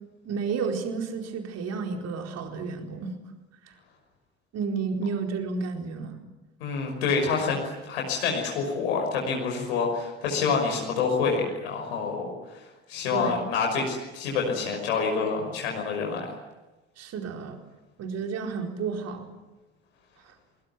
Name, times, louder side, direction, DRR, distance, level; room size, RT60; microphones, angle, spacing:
voice 1, 0.2-3.1 4.5-6.2 13.1-13.4 17.0-17.6 18.0-19.3, right 5 dB, 50° right, 4 dB, 4.5 m, -31 dB
voice 2, 6.6-7.6 7.9-12.3 12.9-16.3, left 5 dB, 75° left, 1 dB, 5.8 m, -27 dB
28.0 x 20.5 x 9.5 m, 1.1 s
figure-of-eight pair, 60°, 32 cm